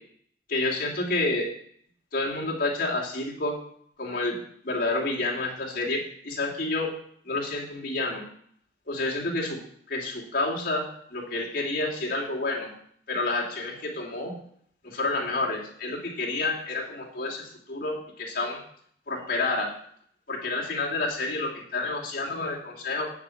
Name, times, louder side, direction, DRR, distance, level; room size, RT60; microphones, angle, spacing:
voice 1, 0.5-1.5 2.1-3.6 4.0-4.4 4.6-6.9 7.2-8.2 8.9-9.6 9.9-12.7 13.1-14.3 14.8-18.6 19.1-19.8 20.3-23.1, left 2 dB, 55° left, -3 dB, 2.9 m, -29 dB
9.2 x 5.0 x 7.8 m, 0.62 s
head